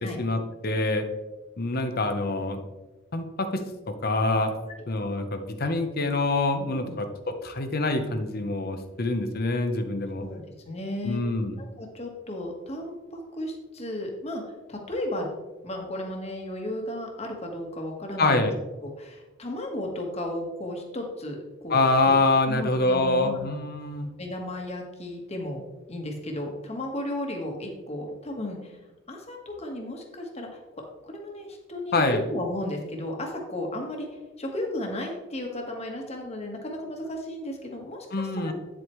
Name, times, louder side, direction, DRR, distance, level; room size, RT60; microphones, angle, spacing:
voice 1, 0.2-1.0 1.6-2.6 3.1-4.5 4.9-10.2 11.0-11.5 18.2-18.5 21.7-24.1 31.9-32.2 38.1-38.5, left 2 dB, 50° left, 7 dB, 0.8 m, -25 dB
voice 2, 10.2-11.2 11.6-14.4 14.7-15.3 15.6-18.5 18.8-22.1 22.5-23.5 24.2-25.6 25.9-28.7 29.1-30.5 31.0-34.1 34.4-38.5, left 1 dB, 30° left, 2 dB, 1.4 m, -34 dB
9.1 x 7.8 x 3.1 m, 1.1 s
head